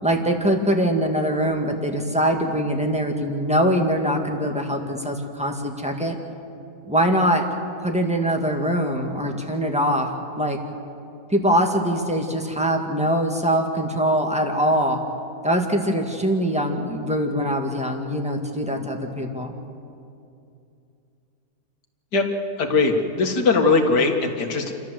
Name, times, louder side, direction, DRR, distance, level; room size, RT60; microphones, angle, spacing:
voice 1, 0.0-6.1 6.9-7.4 7.8-10.1 10.4-10.6 11.3-15.0 15.4-19.5, equal, 5° right, 3 dB, 1.8 m, -23 dB
voice 2, 22.6-24.7, left 3 dB, 80° left, 3 dB, 2.4 m, -20 dB
29.0 x 13.0 x 7.8 m, 2.6 s
omnidirectional pair, 1.8 m